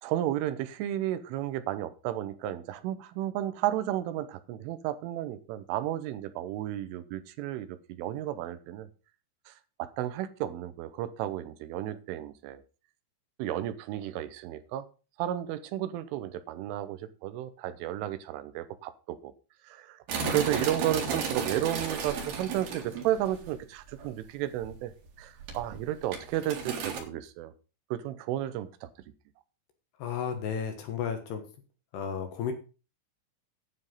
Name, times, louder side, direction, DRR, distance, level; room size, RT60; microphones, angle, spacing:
voice 1, 0.0-8.9 9.5-9.6 9.8-12.6 13.4-14.9 15.2-19.3 19.6-24.9 25.2-27.5 27.9-28.9, right 12 dB, 80° right, 13 dB, 3.3 m, -33 dB
sound 1, 20.1-23.5 23.9-24.1 24.6-25.1 25.4-27.0, right 5 dB, 60° right, 3.7 m, -34 dB
voice 2, 30.0-31.4 31.9-32.5, left 7 dB, 65° left, 6 dB, 3.2 m, -33 dB
9.9 x 8.7 x 5.4 m, 0.34 s
omnidirectional pair, 5.8 m